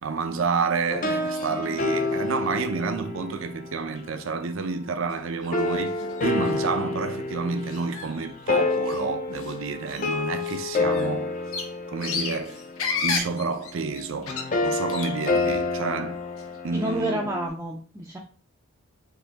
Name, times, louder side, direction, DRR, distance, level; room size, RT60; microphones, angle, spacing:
voice 1, 0.0-11.3 11.9-12.6 13.0-16.2 16.6-17.2, right 4 dB, 70° right, 0.5 m, -29 dB
sound 1, 0.9-4.2 5.5-17.5, left 3 dB, 40° left, 0.5 m, -29 dB
sound 2, 1.3-1.8 2.1-2.7 3.4-3.5 3.8-4.0 4.5-4.6 5.1-5.2 5.4-6.7 7.6-9.0 9.3-9.6 9.9-15.8 16.1-17.1, left 5 dB, 80° left, 0.8 m, -35 dB
voice 2, 16.7-18.2, right 1 dB, 10° right, 0.4 m, -29 dB
4.9 x 2.7 x 3.4 m
head